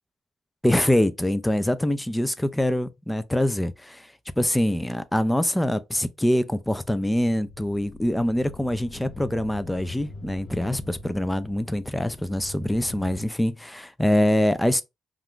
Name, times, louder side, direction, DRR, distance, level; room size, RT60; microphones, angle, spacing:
voice 1, 0.6-4.1 4.4-14.8, left 1 dB, 5° left, 0.3 m, -24 dB
sound 1, 6.5-13.2, left 2 dB, 65° left, 0.9 m, -43 dB
2.4 x 2.3 x 3.5 m
cardioid pair, 90°, 0 cm